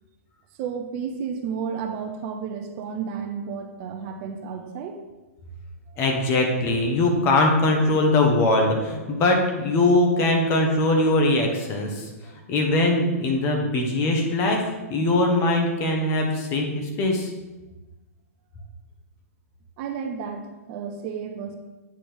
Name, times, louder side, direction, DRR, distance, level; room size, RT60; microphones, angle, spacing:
voice 1, 0.6-5.0 5.9-6.0 19.8-21.6, right 6 dB, 40° right, 5 dB, 0.7 m, -32 dB
voice 2, 6.0-12.1 12.5-14.6 14.9-17.3, left 2 dB, 30° left, 2 dB, 1.2 m, -21 dB
8.7 x 4.2 x 3.5 m, 1.1 s
hypercardioid pair, 120°, 8 cm